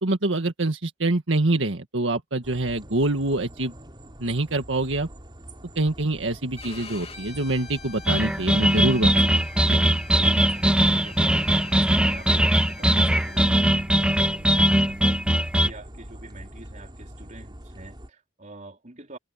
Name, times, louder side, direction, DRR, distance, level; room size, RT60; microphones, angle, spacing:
voice 1, 0.0-3.7 4.2-5.1 5.8-9.8, right 2 dB, 80° right, 1.8 m, -25 dB
sound 1, 2.4-18.1, equal, 25° right, 5.2 m, -44 dB
Bowed string instrument, 6.6-13.5, left 5 dB, 35° left, 3.1 m, -46 dB
sound 2, 8.1-15.7, right 1 dB, 5° right, 0.8 m, -20 dB
voice 2, 10.2-15.2 15.6-19.2, right 2 dB, 40° right, 4.5 m, -46 dB
head